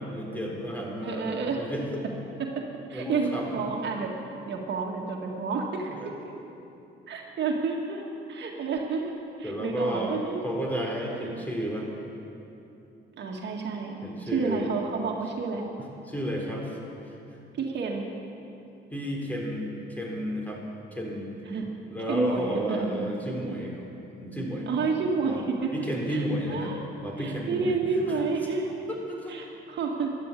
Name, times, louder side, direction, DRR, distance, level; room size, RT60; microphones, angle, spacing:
voice 1, 0.0-2.0 2.9-3.6 6.0-6.1 9.4-11.9 14.0-14.7 15.8-16.8 17.0-17.1 18.9-20.6 20.9-21.3 21.8-23.9 24.1-24.7 25.3-25.4 25.7-26.7 27.0-27.8 28.1-28.2 29.1-29.4, equal, 10° left, -1 dB, 3.8 m, -32 dB
voice 2, 1.0-1.6 2.4-2.5 2.9-4.1 4.5-6.0 7.1-8.0 8.3-9.1 9.4-10.4 11.1-11.5 13.2-13.9 14.3-15.6 17.5-18.1 21.5-21.8 22.1-23.1 24.7-25.7 26.1-26.8 27.2-28.7 29.3-30.1, right 4 dB, 60° right, 0 dB, 1.9 m, -30 dB
13.5 x 11.5 x 8.4 m, 2.9 s
cardioid pair, 90°, 20 cm